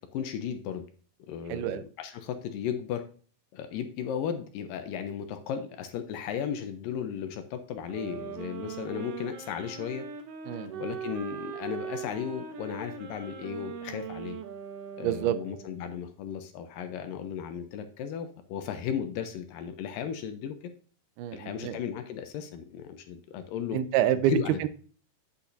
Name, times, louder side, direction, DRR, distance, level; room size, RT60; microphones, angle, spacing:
voice 1, 0.1-0.9 1.3-3.0 3.5-10.1 10.8-14.4 15.0-20.6 21.3-23.8 24.3-24.7, left 8 dB, 75° left, 2.1 m, -35 dB
voice 2, 1.5-1.8 10.5-10.8 15.0-15.4 21.2-21.8 23.7-24.7, right 12 dB, 85° right, 2.6 m, -27 dB
sound 1, 7.9-15.9, right 7 dB, 70° right, 2.0 m, -40 dB
8.3 x 8.2 x 2.6 m
omnidirectional pair, 4.4 m